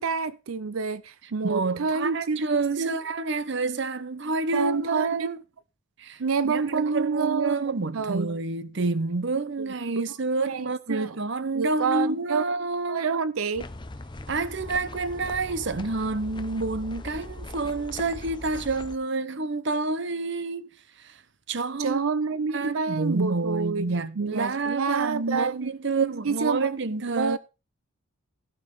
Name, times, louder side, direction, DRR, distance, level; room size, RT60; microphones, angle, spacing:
voice 1, 0.0-2.4 2.8-3.0 4.5-5.1 6.2-8.3 10.4-11.1 11.5-12.4 12.9-13.7 21.8-23.9 24.2-26.7 27.0-27.4, right 5 dB, 85° right, 0.6 m, -28 dB
voice 2, 1.4-5.4 6.0-13.1 14.3-20.7 21.0-21.2 21.5-22.0 22.5-27.4, right 3 dB, 55° right, 0.8 m, -28 dB
sound 1, 13.5-19.0, left 2 dB, 20° left, 0.7 m, -40 dB
15.5 x 5.5 x 5.5 m
head